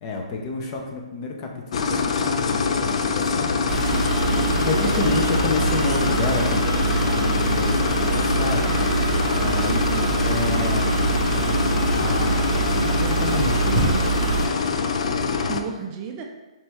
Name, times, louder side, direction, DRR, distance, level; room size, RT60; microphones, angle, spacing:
voice 1, 0.0-3.6 3.9-8.8 9.3-9.7 10.0-11.0 11.3-11.6 11.9-14.0, left 3 dB, 35° left, 1 dB, 0.7 m, -29 dB
sound 1, 1.7-15.6, left 5 dB, 65° left, 0.4 m, -24 dB
sound 2, 2.4-15.0, left 2 dB, 85° left, 0.9 m, -45 dB
sound 3, 3.7-14.5, right 5 dB, 5° right, 1.0 m, -25 dB
voice 2, 4.4-5.2 9.7-10.1 15.5-16.2, right 6 dB, 25° right, 2 dB, 0.4 m, -32 dB
4.3 x 3.0 x 3.5 m, 1.1 s
hypercardioid pair, 140°, 4 cm